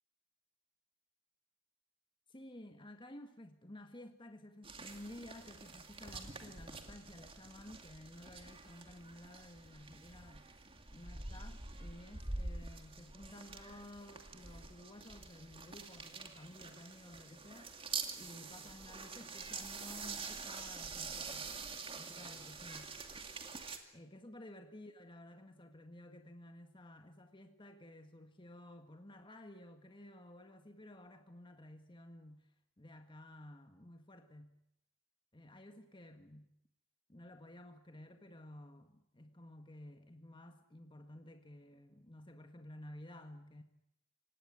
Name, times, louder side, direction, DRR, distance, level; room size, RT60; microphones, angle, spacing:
voice 1, 2.3-10.5 10.9-17.9 18.1-21.5 21.9-23.0 23.9-34.6 35.3-36.5 37.1-43.6, left 1 dB, 25° left, 6 dB, 1.8 m, -54 dB
sound 1, 4.6-23.8, right 4 dB, 25° right, 2.3 m, -46 dB
25.5 x 18.5 x 9.5 m, 0.76 s
head